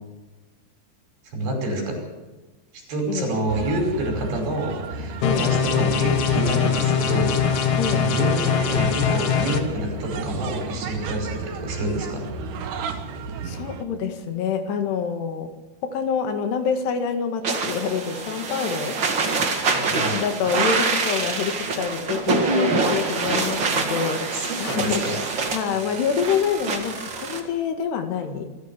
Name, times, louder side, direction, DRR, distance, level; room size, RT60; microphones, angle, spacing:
voice 1, 1.3-2.0 2.9-12.3 19.7-20.2 23.9-25.1, right 1 dB, 80° right, 2 dB, 7.7 m, -28 dB
sound 1, 3.5-13.8, right 4 dB, 60° right, 2.5 m, -33 dB
voice 2, 5.2-5.5 7.7-8.0 13.4-15.5 15.8-19.0 19.9-25.1 25.5-28.5, left 6 dB, 75° left, 6 dB, 3.8 m, -26 dB
sound 2, 5.2-9.6, left 8 dB, 55° left, 2.2 m, -22 dB
sound 3, 17.4-27.4, right 4 dB, 40° right, 1.8 m, -25 dB
25.5 x 14.5 x 7.2 m, 1.2 s
omnidirectional pair, 4.9 m